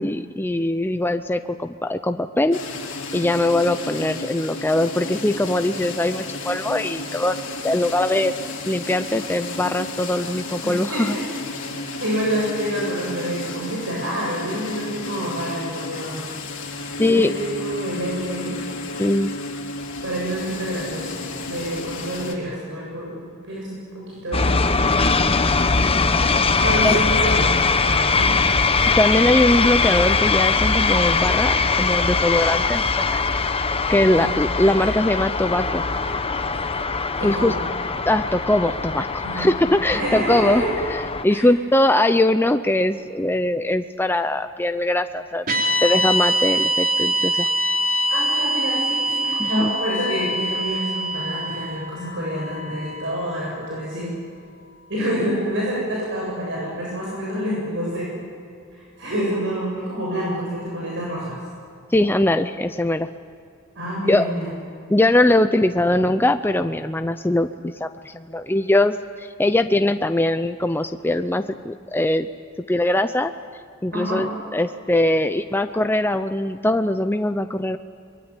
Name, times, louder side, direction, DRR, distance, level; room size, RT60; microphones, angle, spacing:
voice 1, 0.0-2.6 3.1-7.4 7.6-8.3 8.7-11.2 17.0-17.3 19.0-19.3 26.8-27.0 29.0-33.2 33.9-35.8 37.2-37.5 38.1-40.6 41.2-45.4 45.8-47.5 49.4-49.7 61.9-63.1 64.1-64.3 64.9-72.3 72.7-73.3 73.8-77.8, left 1 dB, 10° left, 8 dB, 0.6 m, -21 dB
sound 1, 2.5-22.3, left 2 dB, 65° left, 3.7 m, -33 dB
voice 2, 10.6-11.3 12.0-16.2 17.0-18.6 20.0-25.2 26.6-28.4 34.1-34.3 37.2-37.6 39.2-39.5 39.9-40.7 41.3-41.4 48.1-54.1 54.9-58.1 58.7-61.4 63.7-64.5 73.9-74.2, equal, 60° right, -4 dB, 7.8 m, -28 dB
sound 2, 24.3-41.2, left 4 dB, 25° left, 1.0 m, -21 dB
sound 3, 45.5-53.8, right 1 dB, 45° right, 3.8 m, -24 dB
24.5 x 22.0 x 9.9 m, 2.3 s
head